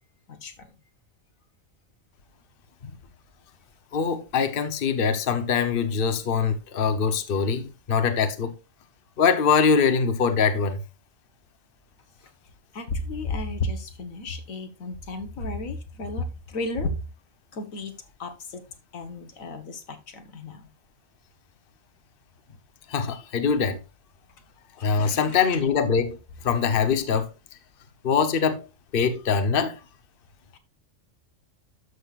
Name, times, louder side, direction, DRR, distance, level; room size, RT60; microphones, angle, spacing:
voice 1, 0.3-0.7 12.2-12.3 12.7-16.9 17.5-17.9 18.2-18.6 18.9-20.7 24.8-25.4 30.5-30.6, left 2 dB, 90° left, 1.7 m, -33 dB
voice 2, 3.9-8.5 9.2-10.8 22.9-23.8 24.8-26.2 26.4-27.3 28.0-28.6 28.9-29.8, left 6 dB, 45° left, 1.1 m, -23 dB
12.5 x 6.6 x 2.4 m
omnidirectional pair, 1.4 m